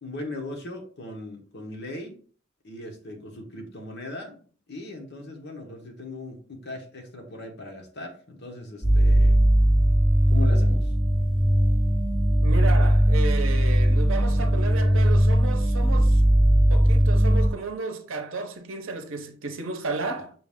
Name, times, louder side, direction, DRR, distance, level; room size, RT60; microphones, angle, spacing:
voice 1, 0.0-2.2 2.6-4.4 4.7-9.5 10.3-10.9, left 2 dB, 55° left, 1.1 m, -38 dB
sound 1, 8.8-17.5, equal, 25° left, 2.1 m, -19 dB
voice 2, 12.4-16.2 16.7-20.3, right 3 dB, 65° right, 0.7 m, -33 dB
5.8 x 2.5 x 3.5 m
head